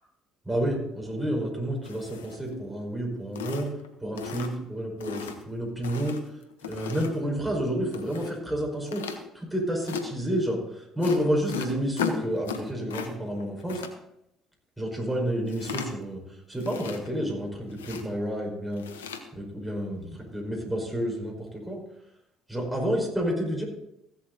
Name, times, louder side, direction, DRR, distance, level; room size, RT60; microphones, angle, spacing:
voice 1, 0.5-3.7 4.0-6.2 6.7-13.8 14.8-16.2 16.5-18.9 19.3-21.8 22.5-23.6, equal, 5° right, -1 dB, 5.2 m, -30 dB
sound 1, 1.8-2.6 2.9-3.0 3.4-3.9 4.2-4.7 5.0-5.4 5.8-7.3 7.9-8.3 8.9-9.2 9.8-10.1 11.0-13.1 13.4-13.9 15.5-16.1 16.5-17.3 17.7-18.0 18.7-19.2, left 7 dB, 85° left, 1.0 m, -36 dB
15.0 x 7.9 x 4.0 m, 0.82 s
hypercardioid pair, 60°, 0 cm